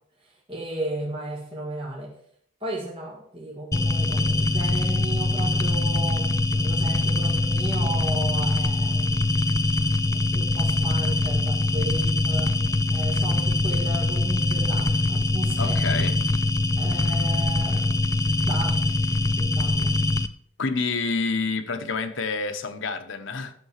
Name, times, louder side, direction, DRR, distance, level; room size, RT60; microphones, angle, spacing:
voice 1, 0.2-2.1 2.6-9.4 10.3-12.6 12.9-15.8 16.8-18.0 18.4-18.8 19.4-19.9, right 1 dB, 25° right, 1.7 m, -35 dB
sound 1, 3.7-20.3, left 2 dB, 15° left, 0.4 m, -23 dB
voice 2, 15.6-16.2 20.6-23.5, left 4 dB, 70° left, 0.9 m, -28 dB
11.0 x 6.5 x 5.7 m
head